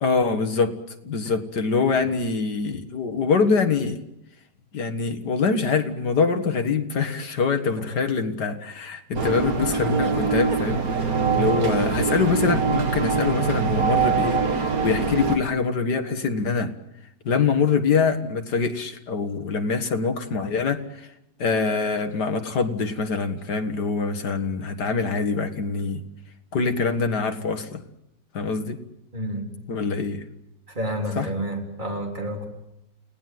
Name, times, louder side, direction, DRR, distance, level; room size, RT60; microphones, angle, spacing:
voice 1, 0.0-0.7 1.0-4.0 4.7-10.9 11.4-16.7 17.2-21.1 21.4-26.0 26.5-27.8 28.3-28.8 29.7-30.2 31.2-31.3, left 5 dB, 65° left, 2.2 m, -24 dB
voice 2, 7.7-8.1 11.2-11.6 29.1-29.5 30.7-32.5, equal, 25° right, 4.1 m, -30 dB
sound 1, 9.1-15.4, right 5 dB, 55° right, 2.2 m, -23 dB
29.5 x 18.5 x 7.8 m
omnidirectional pair, 1.9 m